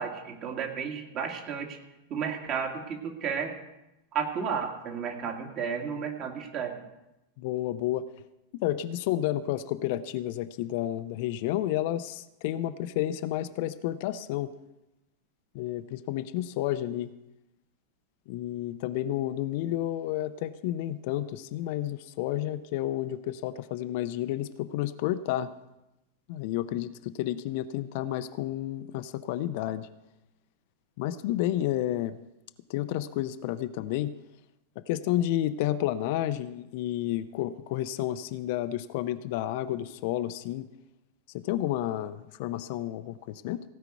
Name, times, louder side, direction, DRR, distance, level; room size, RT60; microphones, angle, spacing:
voice 1, 0.0-1.8 2.1-3.5 4.1-6.8, right 6 dB, 35° right, 2 dB, 2.3 m, -32 dB
voice 2, 7.4-8.1 8.5-14.5 15.5-17.1 18.3-25.5 26.3-29.9 31.0-32.2 32.7-34.1 34.9-40.7 41.3-43.6, left 13 dB, 50° left, 12 dB, 0.6 m, -31 dB
16.5 x 5.9 x 8.0 m, 0.94 s
figure-of-eight pair, 90°, 0 cm